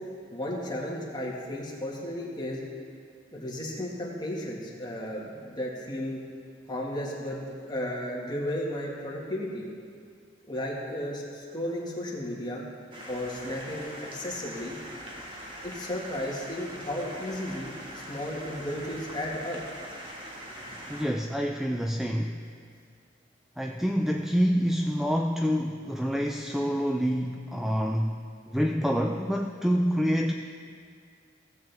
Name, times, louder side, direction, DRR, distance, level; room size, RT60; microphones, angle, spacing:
voice 1, 0.3-2.6 3.3-6.2 6.7-9.6 10.5-12.7 13.1-14.8 15.6-19.6, left 1 dB, 25° left, -4 dB, 1.8 m, -34 dB
sound 1, 12.9-21.1, equal, 30° right, 1.6 m, -42 dB
voice 2, 20.9-22.4 23.6-28.2 28.5-30.3, equal, ahead, 2 dB, 0.3 m, -27 dB
17.0 x 7.6 x 3.4 m, 2.2 s
head